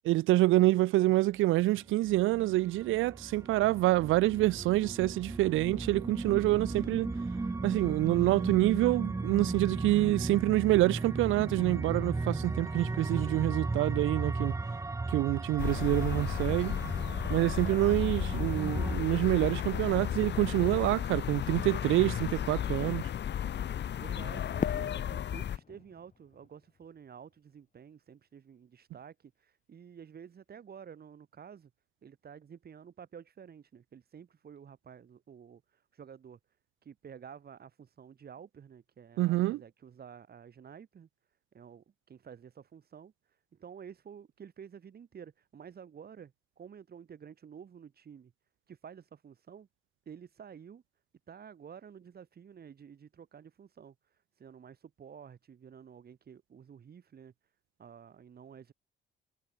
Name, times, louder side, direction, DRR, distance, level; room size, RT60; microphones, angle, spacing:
voice 1, 0.1-7.1 7.6-14.5 15.1-16.8 17.3-23.0 39.2-39.6, right 17 dB, 85° right, 0.6 m, -27 dB
sound 1, 1.3-19.0, right 3 dB, 15° right, 0.7 m, -36 dB
sound 2, 15.6-25.6, left 10 dB, 60° left, 2.2 m, -34 dB
voice 2, 24.0-31.7 32.0-36.4 36.8-41.1 41.5-48.3 48.7-49.7 50.1-50.8 51.3-57.3 57.8-58.7, right 7 dB, 50° right, 7.0 m, -51 dB
Fireworks, 24.6-27.6, left 6 dB, 40° left, 1.7 m, -40 dB
cardioid pair, 90°, 20 cm